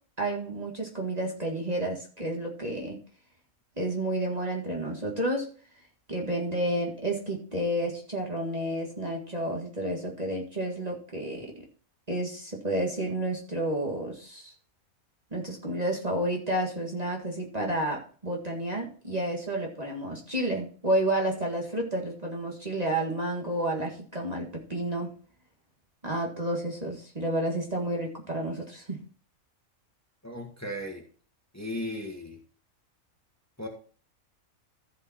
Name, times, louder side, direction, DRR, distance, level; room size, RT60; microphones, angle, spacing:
voice 1, 0.2-3.0 3.8-5.5 6.1-11.5 12.1-14.5 15.3-25.1 26.0-29.0, right 1 dB, 30° right, -1 dB, 1.9 m, -30 dB
voice 2, 30.2-31.1 31.5-32.4 33.6-33.7, left 1 dB, 10° left, 1 dB, 1.8 m, -36 dB
14.5 x 5.5 x 4.3 m, 0.41 s
omnidirectional pair, 1.5 m